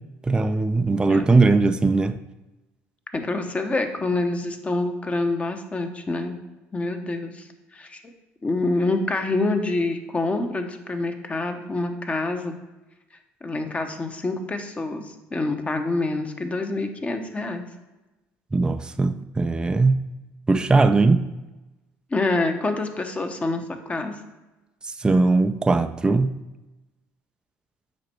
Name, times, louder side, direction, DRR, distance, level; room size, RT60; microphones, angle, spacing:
voice 1, 0.2-2.2 18.5-20.0 20.5-21.3 25.0-26.3, right 3 dB, 15° right, 0.4 m, -19 dB
voice 2, 3.1-6.4 6.7-7.5 7.7-8.0 8.4-12.6 13.4-17.7 22.1-24.1, left 2 dB, 25° left, 1.0 m, -26 dB
7.6 x 5.1 x 4.4 m
supercardioid pair, 90°, 5 cm